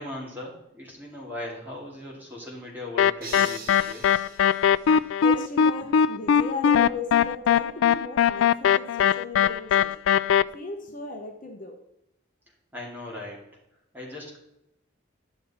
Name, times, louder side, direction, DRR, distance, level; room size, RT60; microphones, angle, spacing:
voice 1, 0.0-4.2 12.7-13.4 13.9-14.4, left 1 dB, 10° right, -4 dB, 2.7 m, -38 dB
sound 1, 3.0-10.4, left 8 dB, 75° left, 0.3 m, -20 dB
sound 2, 3.2-5.5, right 4 dB, 50° right, 1.7 m, -42 dB
voice 2, 4.9-10.0 10.5-11.8, left 3 dB, 45° left, 3 dB, 1.0 m, -37 dB
11.0 x 6.8 x 4.3 m, 0.83 s
head